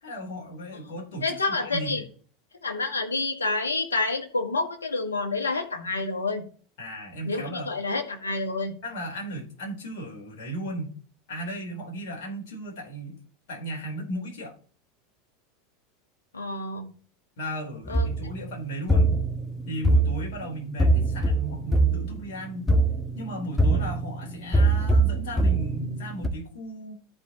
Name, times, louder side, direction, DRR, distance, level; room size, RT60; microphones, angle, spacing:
voice 1, 0.0-2.0 6.8-7.7 8.8-11.0 11.3-13.2 13.5-14.6 17.4-19.2 19.7-22.7 23.2-27.0, right 1 dB, 65° left, 3.8 m, -36 dB
voice 2, 1.2-2.0 2.6-6.4 7.2-8.7 16.3-16.9 17.9-18.1, left 3 dB, 90° left, 1.7 m, -28 dB
sound 1, 17.8-26.3, right 2 dB, 10° left, 1.7 m, -24 dB
13.5 x 5.0 x 3.0 m
hypercardioid pair, 85°, 0 cm